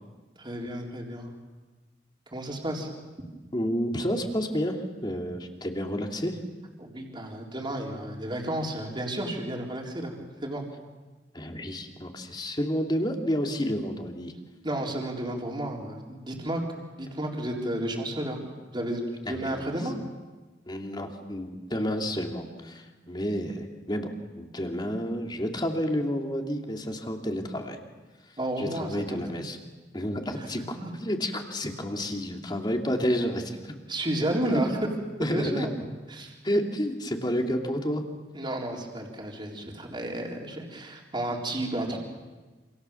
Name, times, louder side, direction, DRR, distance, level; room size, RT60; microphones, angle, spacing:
voice 1, 0.4-1.3 2.3-2.9 6.8-10.6 14.6-16.6 17.0-18.4 18.7-19.0 19.3-20.0 28.4-29.4 30.3-30.4 30.8-30.9 33.9-34.7 35.2-35.7 36.1-36.3 38.3-42.0, right 1 dB, 30° right, 0 dB, 4.1 m, -32 dB
voice 2, 3.5-4.8 5.0-6.4 11.3-14.3 19.3-19.7 20.7-27.8 28.6-29.6 29.9-33.7 35.2-35.7 36.4-38.0, equal, 25° left, 2 dB, 2.9 m, -30 dB
28.0 x 28.0 x 7.2 m, 1.3 s
head